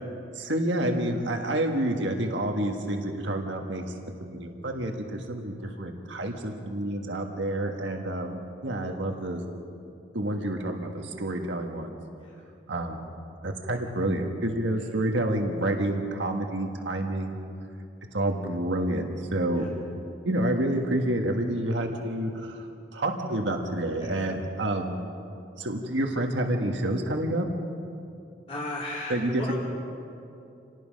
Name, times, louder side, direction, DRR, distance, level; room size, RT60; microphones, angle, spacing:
voice 1, 0.3-3.9 4.2-9.5 10.1-12.0 12.7-13.0 13.4-17.4 18.1-19.0 19.3-19.7 20.2-24.9 25.6-27.5 29.1-29.5, right 1 dB, 75° right, 3 dB, 1.6 m, -28 dB
voice 2, 28.5-29.6, left 2 dB, 30° left, -6 dB, 3.1 m, -36 dB
27.5 x 19.0 x 5.3 m, 2.6 s
head